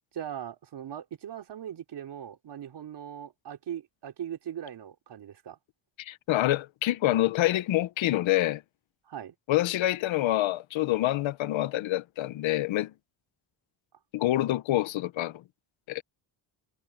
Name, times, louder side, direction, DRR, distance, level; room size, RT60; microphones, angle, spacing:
voice 1, 0.1-5.6 9.1-9.4, right 10 dB, 60° right, 3.9 m, -40 dB
voice 2, 6.0-8.6 9.5-12.9 14.1-15.4 15.9-16.0, left 15 dB, 80° left, 0.9 m, -26 dB
cardioid pair, 150°, 46 cm